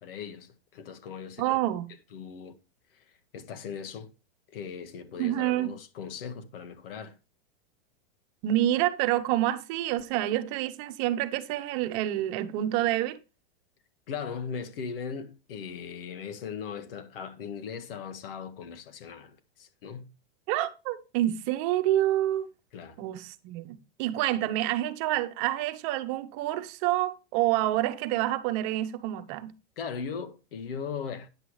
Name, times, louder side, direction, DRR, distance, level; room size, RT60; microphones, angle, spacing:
voice 1, 0.0-1.6 2.1-2.5 3.0-3.1 3.3-4.1 4.5-7.2 14.1-20.1 22.7-22.9 29.8-31.3, left 6 dB, 70° left, 1.7 m, -38 dB
voice 2, 1.4-1.9 5.2-5.7 8.4-13.2 20.5-22.5 23.0-23.7 24.0-29.5, right 14 dB, 45° right, 1.1 m, -27 dB
9.7 x 7.9 x 3.2 m
supercardioid pair, 140°, 29 cm